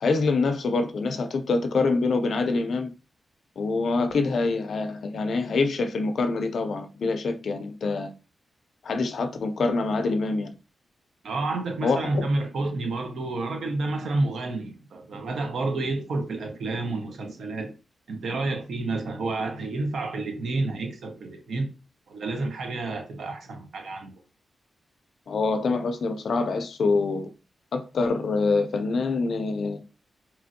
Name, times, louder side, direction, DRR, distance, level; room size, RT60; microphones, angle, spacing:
voice 1, 0.0-2.9 3.6-8.1 8.8-10.5 11.8-12.3 25.3-27.3 27.7-29.8, left 3 dB, 65° left, 0.4 m, -25 dB
voice 2, 11.2-17.7 18.1-21.7 22.1-24.1, right 2 dB, 80° right, 0.7 m, -29 dB
3.0 x 2.5 x 2.6 m
wide cardioid pair, 135°, 0 cm